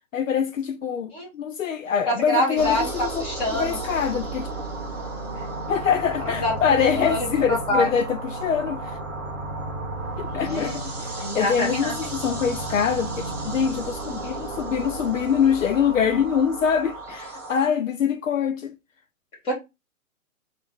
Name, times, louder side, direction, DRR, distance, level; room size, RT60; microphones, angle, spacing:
voice 1, 0.1-3.3 3.5-4.5 5.7-9.0 10.2-18.8, left 7 dB, 65° left, 0.6 m, -24 dB
voice 2, 2.1-2.9 3.2-3.8 6.2-7.9 10.4-10.7 11.2-12.0 19.4-19.5, left 1 dB, 10° left, 1.2 m, -26 dB
sound 1, 2.6-17.7, right 2 dB, 15° right, 0.5 m, -33 dB
3.3 x 2.5 x 4.4 m
hypercardioid pair, 145°, 42 cm